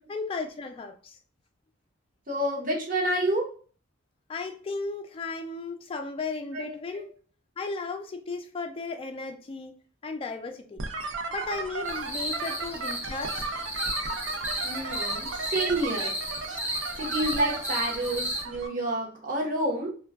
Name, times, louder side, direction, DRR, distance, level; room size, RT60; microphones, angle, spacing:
voice 1, 0.1-1.2 4.3-7.1 7.6-9.8 10.0-10.8 11.3-13.5, left 3 dB, 30° left, 0.3 m, -35 dB
voice 2, 2.3-3.5 6.5-7.1 14.6-16.1 17.0-19.9, right 1 dB, 45° right, 0.8 m, -29 dB
sound 1, 10.8-18.7, right 3 dB, 75° right, 0.5 m, -35 dB
sound 2, 11.8-18.4, equal, 10° right, 0.7 m, -34 dB
2.2 x 2.2 x 3.4 m
head